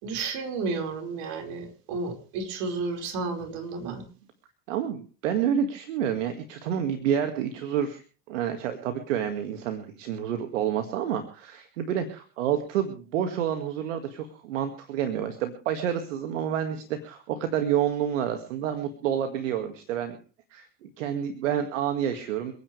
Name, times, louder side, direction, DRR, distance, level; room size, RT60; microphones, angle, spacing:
voice 1, 0.0-4.0, right 4 dB, 65° right, 4 dB, 5.0 m, -32 dB
voice 2, 4.7-8.0 8.3-20.2 20.5-22.5, right 9 dB, 80° right, 8 dB, 2.1 m, -29 dB
28.5 x 9.8 x 3.3 m, 0.38 s
hypercardioid pair, 80°, 37 cm